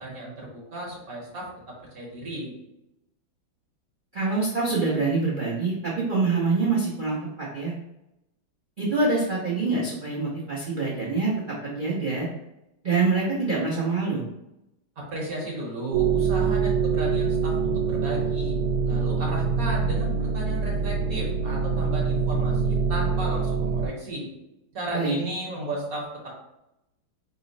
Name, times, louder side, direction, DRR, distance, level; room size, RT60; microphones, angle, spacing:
voice 1, 0.0-1.5 1.9-2.5 15.0-18.6 18.8-24.3 24.7-26.3, right 1 dB, 50° right, -3 dB, 1.2 m, -34 dB
voice 2, 4.1-7.7 8.8-11.3 11.6-12.3 12.8-14.2 24.9-25.2, right 3 dB, 65° right, -5 dB, 0.4 m, -25 dB
sound 1, 15.9-23.9, right 5 dB, 90° right, 1.4 m, -25 dB
5.4 x 2.0 x 3.9 m, 0.89 s
omnidirectional pair, 2.3 m